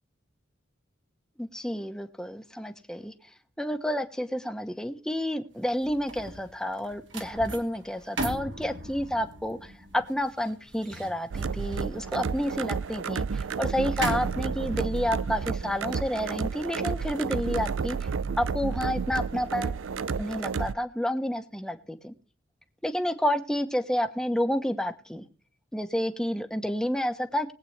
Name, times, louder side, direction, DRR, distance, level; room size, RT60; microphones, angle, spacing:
voice 1, 1.4-3.1 3.6-18.1 18.4-19.8 20.2-22.1 22.8-25.2 25.7-27.5, equal, 5° left, 7 dB, 1.1 m, -30 dB
sound 1, 5.6-18.9 19.3-19.6, right 1 dB, 65° right, 2.0 m, -40 dB
sound 2, 11.3-20.7, right 5 dB, 85° right, 0.5 m, -31 dB
21.0 x 8.5 x 3.3 m, 0.37 s
head